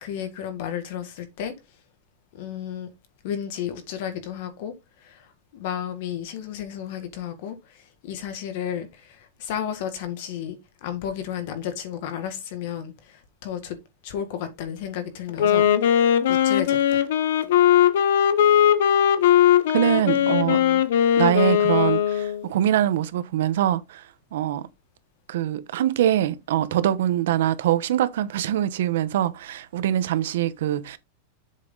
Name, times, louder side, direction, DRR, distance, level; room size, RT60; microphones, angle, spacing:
voice 1, 0.0-1.5 2.3-2.9 3.2-4.7 5.0-5.2 5.5-7.6 8.0-13.8 14.0-15.7 16.3-17.0 20.1-20.8, left 9 dB, 45° left, 1.7 m, -33 dB
Wind instrument woodwind instrument, 15.3-22.5, left 10 dB, 65° left, 1.0 m, -19 dB
voice 2, 19.7-20.6 21.2-24.1 24.3-24.7 25.3-31.0, right 11 dB, 65° right, 0.9 m, -23 dB
7.5 x 5.9 x 3.9 m
supercardioid pair, 180°, 0 cm